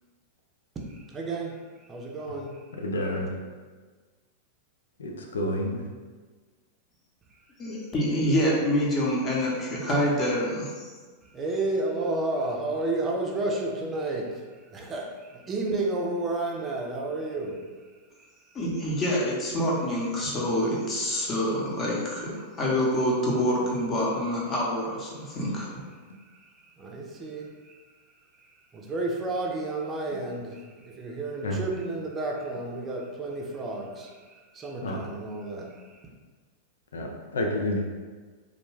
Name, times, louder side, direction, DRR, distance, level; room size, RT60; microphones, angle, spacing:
voice 1, 0.9-1.6 1.9-2.6 11.3-14.4 14.7-17.6 26.8-27.7 28.7-34.1 34.5-35.7, right 2 dB, 25° right, 0 dB, 0.5 m, -31 dB
voice 2, 2.8-3.3 5.0-5.8 31.4-31.6 34.8-35.0 36.9-37.8, left 1 dB, 80° left, 1 dB, 0.4 m, -29 dB
voice 3, 7.6-10.9 18.5-25.7, equal, 30° left, -4 dB, 0.8 m, -26 dB
2.4 x 2.2 x 3.2 m, 1.4 s
hypercardioid pair, 100°, 0 cm